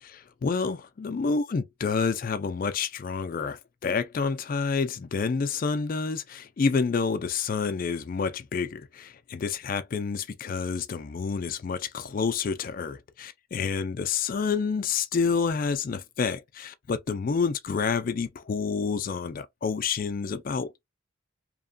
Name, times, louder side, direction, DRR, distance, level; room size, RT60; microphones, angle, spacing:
voice 1, 0.0-20.8, left 5 dB, 40° left, 0.3 m, -29 dB
2.8 x 2.2 x 2.5 m
head